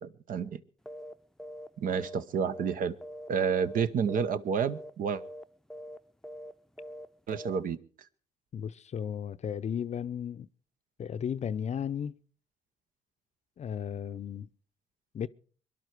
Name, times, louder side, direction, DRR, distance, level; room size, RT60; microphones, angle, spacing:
voice 1, 0.0-0.6 1.8-3.0 3.3-5.2 7.3-7.8, right 6 dB, 55° right, 0.9 m, -30 dB
sound 1, 0.9-1.1 1.4-1.7 1.9-3.3 3.6-3.8 4.1-4.4 4.6-4.9 5.2-5.4 5.7-6.0 6.2-6.5 6.8-7.1 7.3-7.6, equal, 5° left, 0.7 m, -43 dB
voice 2, 8.5-10.5 11.0-12.2 13.6-14.5 15.1-15.3, left 8 dB, 45° left, 0.6 m, -34 dB
22.5 x 11.5 x 4.7 m
hypercardioid pair, 55°, 16 cm